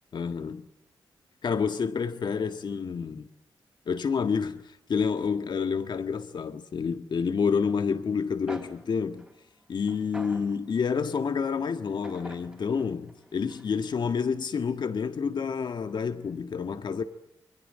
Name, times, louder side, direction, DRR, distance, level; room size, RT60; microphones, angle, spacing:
voice 1, 0.1-0.7 1.4-3.3 3.9-9.2 9.7-17.0, left 6 dB, 65° left, 1.7 m, -29 dB
sound 1, 8.2-8.3 8.5-11.1 12.0-14.0, right 1 dB, 10° right, 4.4 m, -46 dB
29.0 x 22.5 x 7.7 m
cardioid pair, 70°, 8 cm